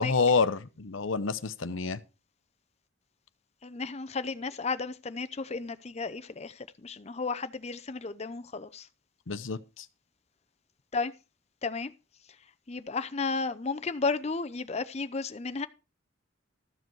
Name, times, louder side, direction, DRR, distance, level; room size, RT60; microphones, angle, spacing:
voice 1, 0.0-2.0 9.3-9.9, left 4 dB, 75° left, 0.8 m, -28 dB
voice 2, 3.6-8.9 10.9-11.1 11.6-11.9 12.7-15.7, left 4 dB, 35° left, 0.6 m, -33 dB
13.5 x 7.9 x 4.7 m
head